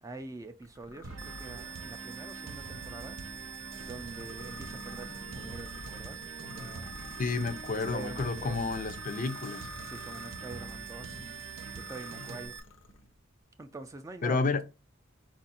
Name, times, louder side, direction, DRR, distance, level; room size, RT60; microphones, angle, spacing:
voice 1, 0.0-3.2 3.8-7.0 7.3-7.4 7.7-8.7 9.8-11.2 11.7-12.6 13.6-14.6, right 3 dB, 15° right, 0.3 m, -45 dB
sound 1, 0.6-10.9 11.5-13.1, left 3 dB, 75° left, 0.7 m, -51 dB
sound 2, 1.0-12.5, right 2 dB, 75° right, 0.7 m, -45 dB
sound 3, 1.2-12.6, right 8 dB, 40° right, 0.8 m, -45 dB
voice 2, 7.2-9.7 14.2-14.6, left 3 dB, 40° left, 0.5 m, -30 dB
4.5 x 2.5 x 4.2 m
head